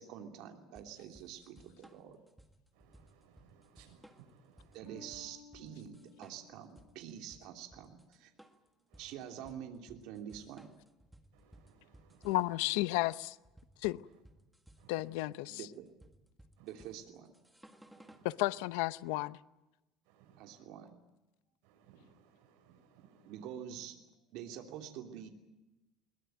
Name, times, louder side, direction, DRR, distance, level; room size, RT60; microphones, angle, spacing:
voice 1, 0.0-2.2 4.7-8.3 9.0-10.7 15.5-15.9 16.6-17.3 20.4-21.0 23.2-25.3, right 9 dB, 60° right, 2.9 m, -47 dB
sound 1, 0.8-18.3, right 1 dB, 5° right, 1.8 m, -60 dB
voice 2, 2.7-5.0 8.9-9.4 11.3-12.4 14.0-14.2 14.8-15.4 16.6-16.9 17.9-18.6 20.0-20.7 21.6-23.5, right 8 dB, 85° right, 6.5 m, -63 dB
Bass guitar, 4.9-7.9, left 2 dB, 45° left, 4.4 m, -58 dB
voice 3, 12.2-13.4 13.8-14.0 14.9-15.6 18.2-19.4, left 19 dB, 90° left, 0.8 m, -33 dB
22.0 x 21.5 x 9.2 m
cardioid pair, 165°, 0 cm